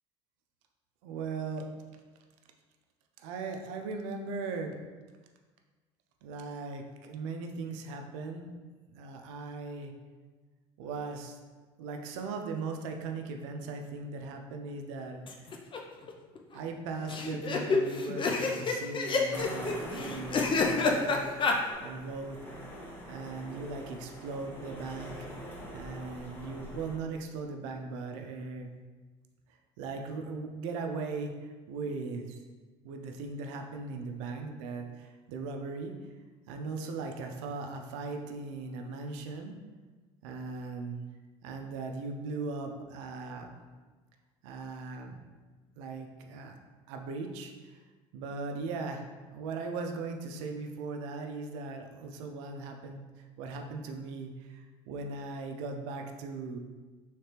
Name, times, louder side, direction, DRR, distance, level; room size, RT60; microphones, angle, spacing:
voice 1, 1.0-1.7 3.2-4.8 6.2-8.5 8.9-9.9 10.8-11.4 11.8-15.5 16.5-21.6 21.8-22.4 23.1-25.3 25.7-28.8 29.8-32.4 32.8-36.0 36.5-39.6 40.2-41.0 41.4-43.6 44.4-45.2 45.8-46.6 46.9-47.8 48.1-56.6, right 4 dB, 80° right, 4 dB, 0.5 m, -39 dB
sound 1, 15.3-15.8 16.1-16.2 16.4-16.5 17.1-21.6, left 4 dB, 35° left, 0.5 m, -28 dB
sound 2, 19.3-27.0, equal, 15° left, 0.9 m, -44 dB
3.2 x 3.2 x 2.9 m, 1.3 s
supercardioid pair, 75°, 15 cm